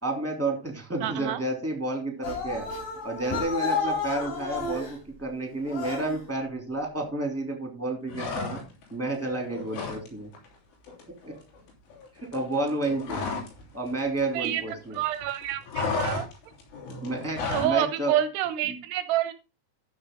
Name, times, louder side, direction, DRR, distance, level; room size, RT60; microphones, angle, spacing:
voice 1, 0.0-2.7 3.0-8.6 8.9-10.3 11.2-11.3 12.1-13.2 13.7-15.0 17.0-18.2 18.7-18.8, right 2 dB, 5° right, 2 dB, 2.1 m, -30 dB
voice 2, 1.0-1.4 14.3-16.3 17.5-19.3, right 12 dB, 75° right, 12 dB, 2.6 m, -28 dB
sound 1, 2.2-5.0 5.7-6.2, left 4 dB, 45° left, 5.4 m, -31 dB
sound 2, 8.1-8.9 9.2-10.1 10.3-10.6 10.8-13.6 13.9-15.0 15.2-17.8, left 4 dB, 85° left, 6.0 m, -33 dB
14.0 x 6.5 x 3.8 m, 0.30 s
omnidirectional pair, 5.4 m